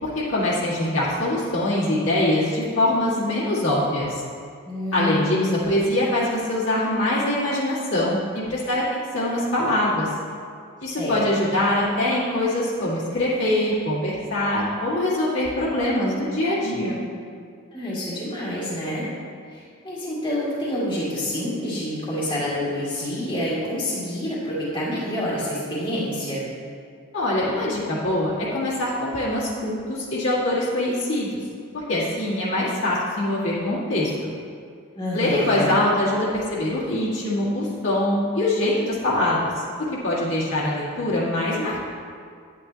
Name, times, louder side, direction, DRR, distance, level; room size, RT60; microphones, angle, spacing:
voice 1, 0.0-4.2 4.9-10.1 10.8-17.0 27.1-31.4 31.7-34.3 35.1-39.5 40.0-41.8, left 1 dB, 60° left, -8 dB, 2.0 m, -23 dB
voice 2, 4.6-5.6 10.9-11.5 17.7-19.1 19.5-26.4 35.0-35.8, left 1 dB, 20° left, -8 dB, 2.1 m, -28 dB
11.0 x 8.9 x 2.9 m, 2.2 s
head